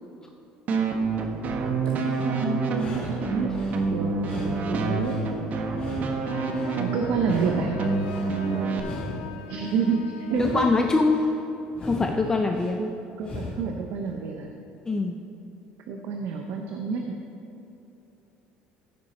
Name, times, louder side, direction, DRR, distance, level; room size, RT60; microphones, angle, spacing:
sound 1, 0.7-8.8, right 4 dB, 50° right, 1.1 m, -27 dB
sound 2, 1.9-2.3 2.7-3.8 4.2-5.3 5.7-6.8 7.2-8.3 8.7-9.8 10.2-11.3 11.7-12.7 13.2-13.8, left 2 dB, 30° left, 2.2 m, -39 dB
voice 1, 1.9-3.6 3.9-5.2 6.8-7.7 9.5-10.7 12.8-12.9 13.2-14.5 15.9-17.1, right 5 dB, 70° right, 2 dB, 0.8 m, -29 dB
sound 3, 6.2-11.1, left 4 dB, 85° left, 0.8 m, -41 dB
voice 2, 10.4-11.3 11.8-12.8 14.9-15.3, left 3 dB, 15° left, 3 dB, 0.5 m, -23 dB
14.5 x 5.3 x 4.3 m, 2.9 s
supercardioid pair, 100°, 4 cm